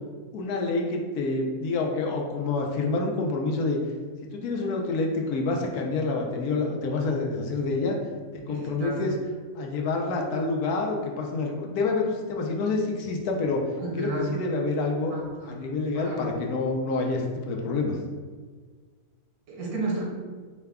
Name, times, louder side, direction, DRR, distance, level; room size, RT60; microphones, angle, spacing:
voice 1, 0.3-3.8 4.3-8.0 8.3-9.1 9.5-13.6 14.0-15.1 15.4-18.0, left 3 dB, 85° left, 1 dB, 1.2 m, -27 dB
voice 2, 8.4-9.0 13.8-14.3 15.1-15.6 15.9-16.4 19.5-20.0, right 2 dB, 80° right, -3 dB, 1.5 m, -32 dB
4.9 x 2.2 x 3.5 m, 1.5 s
omnidirectional pair, 1.6 m